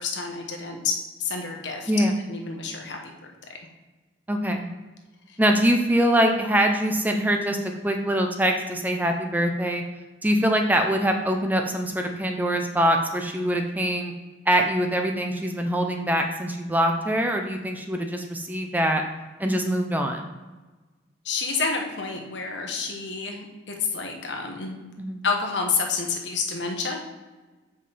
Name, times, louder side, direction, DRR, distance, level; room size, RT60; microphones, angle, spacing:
voice 1, 0.0-1.9 2.3-3.1 5.3-5.4 21.2-24.8 25.2-27.0, left 4 dB, 80° left, 2 dB, 1.1 m, -29 dB
voice 2, 1.9-2.2 4.3-4.7 5.4-9.8 10.2-14.1 14.5-19.0 19.4-20.3 25.0-25.2, equal, 10° right, 3 dB, 0.5 m, -23 dB
7.5 x 5.2 x 4.1 m, 1.2 s
head